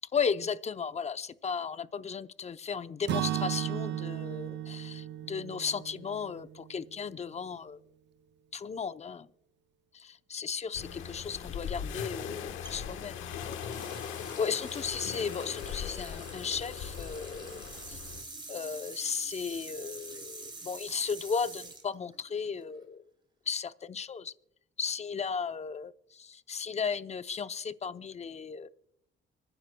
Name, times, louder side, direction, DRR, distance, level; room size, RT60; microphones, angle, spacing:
voice 1, 0.1-7.8 8.5-9.3 9.9-13.2 14.4-18.0 18.5-23.0 23.5-24.3 24.8-25.9 26.5-28.7, left 6 dB, 35° left, 13 dB, 0.6 m, -35 dB
Acoustic guitar / Strum, 3.1-7.0, right 13 dB, 65° right, 0.6 m, -35 dB
sound 1, 10.7-18.2, left 7 dB, 90° left, 1.2 m, -39 dB
sound 2, 12.6-22.8, right 3 dB, 25° right, 3.1 m, -47 dB
25.5 x 9.9 x 2.2 m, 0.74 s
cardioid pair, 90°, 20 cm